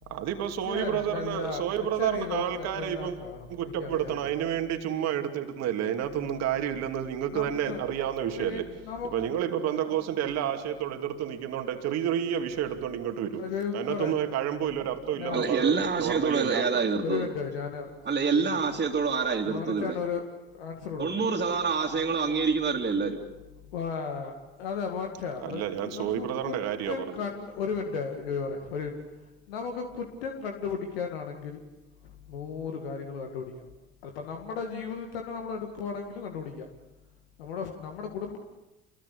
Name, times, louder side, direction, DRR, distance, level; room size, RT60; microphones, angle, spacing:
voice 1, 0.1-3.2 3.5-8.7 9.1-13.4 13.7-16.9 25.4-27.2, right 10 dB, 60° right, 2.7 m, -30 dB
voice 2, 0.7-1.7 2.0-4.3 7.3-7.8 8.2-10.0 13.4-14.2 15.2-15.5 17.0-17.9 18.3-18.6 19.4-20.2 20.5-21.2 23.6-26.5 26.9-29.0 29.5-31.6 32.0-33.7 34.0-36.7 37.4-38.4, left 6 dB, 75° left, 2.1 m, -35 dB
voice 3, 15.3-17.3 18.0-20.0 21.0-23.2, right 5 dB, 35° right, 3.1 m, -27 dB
28.0 x 21.5 x 8.5 m
hypercardioid pair, 55°, 30 cm